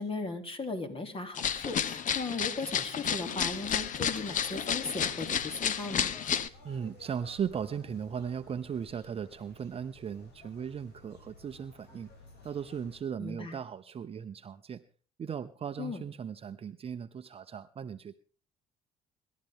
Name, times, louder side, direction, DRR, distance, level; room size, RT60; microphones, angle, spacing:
voice 1, 0.0-6.1 13.2-13.6 15.8-16.0, left 3 dB, 35° left, 7 dB, 3.2 m, -37 dB
sound 1, 1.3-6.5, left 8 dB, 50° left, 1.0 m, -31 dB
sound 2, 3.4-13.0, left 3 dB, 80° left, 6.7 m, -55 dB
voice 2, 6.6-12.1 12.4-14.8 15.2-18.1, right 7 dB, 35° right, 10 dB, 0.7 m, -37 dB
26.0 x 12.0 x 3.7 m, 0.41 s
cardioid pair, 110°, 17 cm